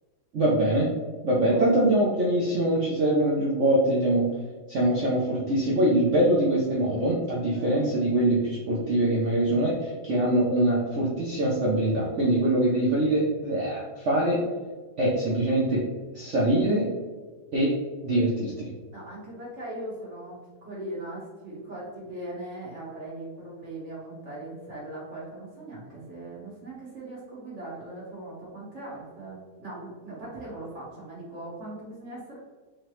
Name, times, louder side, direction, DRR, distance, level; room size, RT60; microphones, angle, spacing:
voice 1, 0.3-0.9 1.2-4.3 4.7-14.4 15.0-15.8 16.1-16.9 17.5-17.7 18.0-18.7, right 1 dB, 85° right, -5 dB, 0.6 m, -23 dB
voice 2, 1.4-1.7 7.5-7.8 18.9-32.4, right 1 dB, 45° right, -6 dB, 1.1 m, -40 dB
3.8 x 3.2 x 3.1 m, 1.3 s
omnidirectional pair, 2.2 m